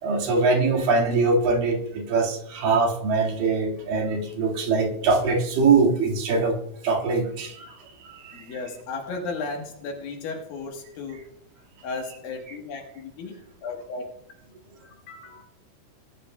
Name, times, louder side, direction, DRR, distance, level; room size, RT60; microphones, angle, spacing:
voice 1, 0.0-6.6 6.8-7.8 8.0-8.6 12.5-12.6, right 4 dB, 75° right, 1 dB, 3.6 m, -23 dB
voice 2, 8.3-11.3 11.8-14.1 14.8-15.4, left 3 dB, 80° left, 1 dB, 3.1 m, -35 dB
19.0 x 12.5 x 2.2 m, 0.75 s
omnidirectional pair, 4.1 m